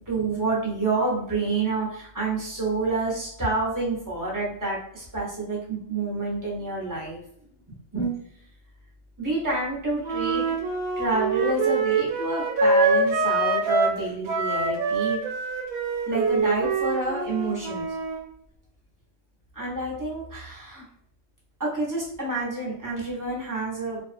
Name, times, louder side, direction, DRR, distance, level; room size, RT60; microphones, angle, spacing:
voice 1, 0.1-7.2 7.9-8.2 9.2-10.4 11.0-15.2 16.1-17.8 19.5-20.8 21.6-24.0, right 3 dB, 20° right, -5 dB, 0.5 m, -28 dB
Wind instrument woodwind instrument, 10.0-14.0 14.3-18.2, right 3 dB, 85° right, 1.1 m, -25 dB
2.5 x 2.3 x 2.5 m, 0.67 s
omnidirectional pair, 1.5 m